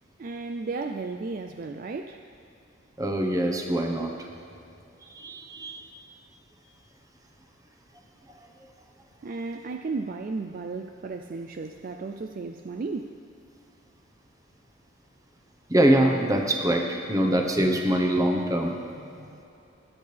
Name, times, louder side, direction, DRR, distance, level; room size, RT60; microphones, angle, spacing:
voice 1, 0.2-2.2 9.2-13.2 18.7-19.4, right 3 dB, 45° right, 6 dB, 0.4 m, -34 dB
voice 2, 3.0-4.1 5.1-5.9 15.7-18.7, right 1 dB, 20° right, 2 dB, 1.0 m, -23 dB
20.5 x 8.6 x 3.4 m, 2.7 s
head